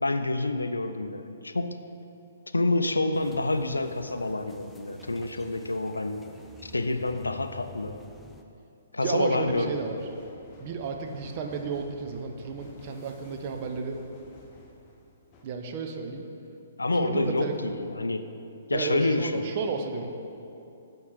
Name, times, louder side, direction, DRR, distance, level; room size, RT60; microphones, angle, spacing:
voice 1, 0.0-1.8 2.5-6.2 6.6-8.0 8.9-9.7 16.8-18.3 18.7-19.6, left 2 dB, 75° left, 9 dB, 0.4 m, -28 dB
sound 1, 3.1-8.4, left 1 dB, 5° left, 0.4 m, -50 dB
voice 2, 9.0-10.0 10.6-14.0 15.4-16.2 17.0-17.5 18.7-20.1, right 4 dB, 40° right, 4 dB, 0.7 m, -32 dB
sound 2, 9.4-15.4, left 2 dB, 25° left, 0.9 m, -52 dB
8.4 x 4.4 x 4.9 m, 2.7 s
figure-of-eight pair, 120°, 0 cm